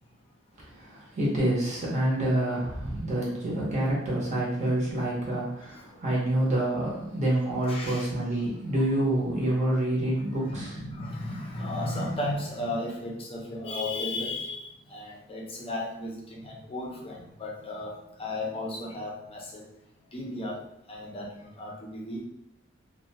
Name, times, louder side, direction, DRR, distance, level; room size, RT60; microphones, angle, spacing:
voice 1, 0.6-10.7, right 1 dB, 35° right, -5 dB, 0.7 m, -27 dB
voice 2, 7.7-8.1 10.5-19.7 20.1-22.2, left 1 dB, 30° left, -2 dB, 0.5 m, -35 dB
2.4 x 2.2 x 2.8 m, 0.79 s
head